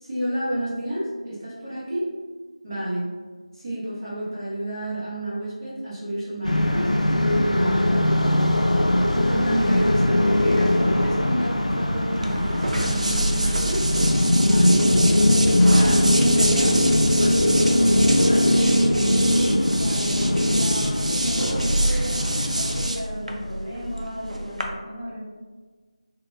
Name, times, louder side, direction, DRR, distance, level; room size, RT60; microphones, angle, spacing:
voice 1, 0.0-2.1 2.6-3.1 3.5-6.9 7.5-8.4 9.3-13.8 14.4-15.2 15.6-18.5, right 1 dB, 30° right, -10 dB, 0.8 m, -30 dB
sound 1, 6.4-22.9, left 1 dB, 75° left, 0.4 m, -21 dB
sound 2, 12.2-24.6, right 1 dB, 70° right, 0.4 m, -27 dB
voice 2, 19.7-25.2, equal, 25° left, -10 dB, 1.5 m, -34 dB
3.8 x 2.2 x 2.5 m, 1.4 s
figure-of-eight pair, 170°, 4 cm